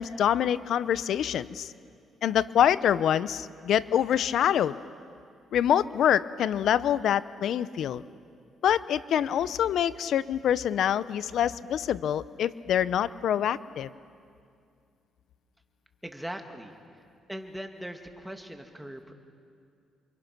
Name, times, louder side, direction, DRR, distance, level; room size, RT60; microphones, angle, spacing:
voice 1, 0.0-1.7 2.2-4.8 5.5-8.0 8.6-13.9, left 10 dB, 70° left, 16 dB, 0.7 m, -25 dB
voice 2, 16.0-16.8 17.3-19.1, equal, 5° right, 4 dB, 2.3 m, -40 dB
28.5 x 24.5 x 6.1 m, 2.3 s
cardioid pair, 90°, 0 cm